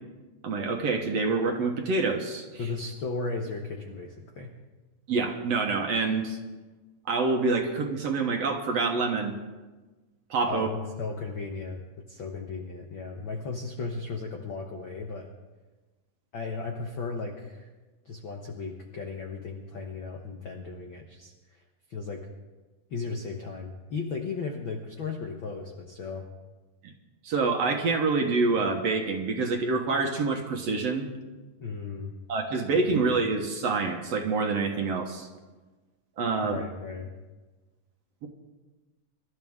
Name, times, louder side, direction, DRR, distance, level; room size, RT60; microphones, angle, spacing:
voice 1, 0.4-2.6 5.1-6.4 7.1-9.3 10.3-10.7 26.8-26.9 27.2-31.1 32.3-35.3 36.2-36.6, right 4 dB, 60° right, 2 dB, 1.9 m, -26 dB
voice 2, 2.6-4.5 10.5-11.8 12.1-15.3 16.3-17.7 18.0-21.6 21.9-22.3 22.9-26.3 31.6-32.1 32.9-33.0 36.4-37.1, left 4 dB, 90° left, 2 dB, 1.0 m, -35 dB
25.5 x 13.0 x 3.6 m, 1.2 s
omnidirectional pair, 4.0 m